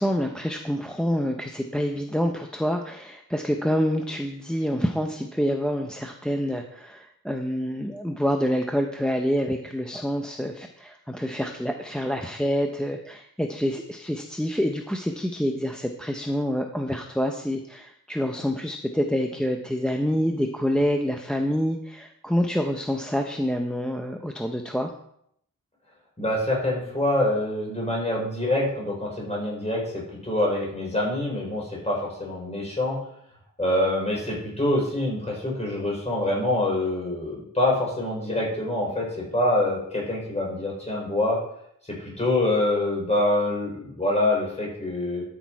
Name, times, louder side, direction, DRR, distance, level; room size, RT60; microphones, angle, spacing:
voice 1, 0.0-24.9, equal, 5° left, 4 dB, 0.7 m, -27 dB
voice 2, 26.2-33.0 33.6-41.4 42.0-45.2, left 1 dB, 20° left, -3 dB, 4.7 m, -25 dB
12.5 x 6.3 x 4.6 m, 0.72 s
wide cardioid pair, 125°, 32 cm